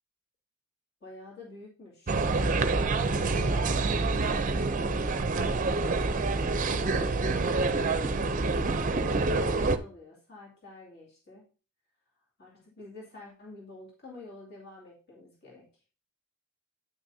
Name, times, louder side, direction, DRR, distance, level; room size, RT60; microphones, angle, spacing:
voice 1, 1.0-2.2 2.9-4.5 6.7-7.6 8.9-11.5 12.4-15.7, left 2 dB, 50° left, -4 dB, 2.4 m, -49 dB
sound 1, 2.1-9.8, right 3 dB, 35° right, 0.5 m, -27 dB
9.7 x 6.2 x 2.7 m, 0.35 s
head